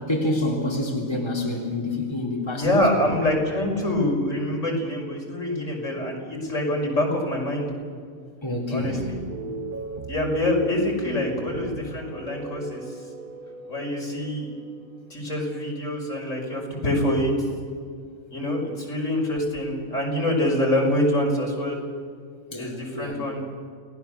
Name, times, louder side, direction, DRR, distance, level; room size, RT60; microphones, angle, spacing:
voice 1, 0.1-3.1 8.4-9.1 18.4-18.6 22.5-23.2, left 1 dB, 20° left, -1 dB, 3.3 m, -28 dB
voice 2, 2.6-7.7 8.7-9.2 10.1-12.8 13.7-14.5 15.1-17.3 18.3-21.8 22.5-23.4, left 1 dB, 65° left, -1 dB, 5.8 m, -25 dB
sound 1, 8.8-16.3, right 3 dB, 40° right, 1.4 m, -37 dB
29.5 x 19.0 x 7.2 m, 2.2 s
omnidirectional pair, 1.4 m